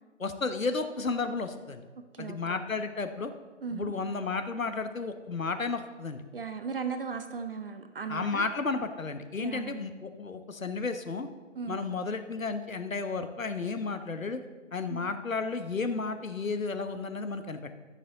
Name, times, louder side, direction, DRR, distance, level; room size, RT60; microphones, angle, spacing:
voice 1, 0.2-1.8 2.2-3.3 3.7-6.2 8.1-11.3 11.7-14.4 14.7-17.7, left 4 dB, 90° left, 8 dB, 1.0 m, -33 dB
voice 2, 2.1-2.6 3.6-3.9 6.3-8.4 9.4-9.9 11.5-11.8 14.9-15.1, right 5 dB, 45° right, 8 dB, 0.6 m, -37 dB
13.0 x 6.4 x 3.9 m, 1.4 s
figure-of-eight pair, 145°, 39 cm